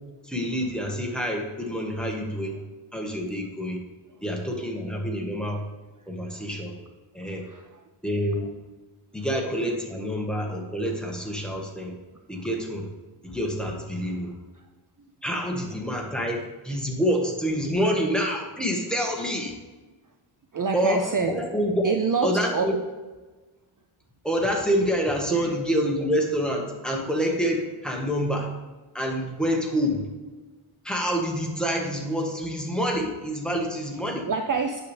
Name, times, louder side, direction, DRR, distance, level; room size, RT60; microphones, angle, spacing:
voice 1, 0.3-2.6 2.9-3.8 4.2-5.6 6.1-6.7 7.1-7.5 8.0-8.5 9.1-11.9 12.3-12.9 13.2-14.3 15.2-19.5 20.7-22.7 24.2-28.5 28.9-30.0 30.8-34.3, equal, ahead, 0 dB, 1.4 m, -27 dB
voice 2, 7.4-7.8 8.2-8.3 9.2-9.3 14.1-14.2 14.5-14.6 20.5-21.4 21.8-22.7 25.3-25.5 34.2-34.8, right 5 dB, 40° right, 5 dB, 0.6 m, -27 dB
9.3 x 6.9 x 3.3 m, 1.2 s
wide cardioid pair, 110°, 50 cm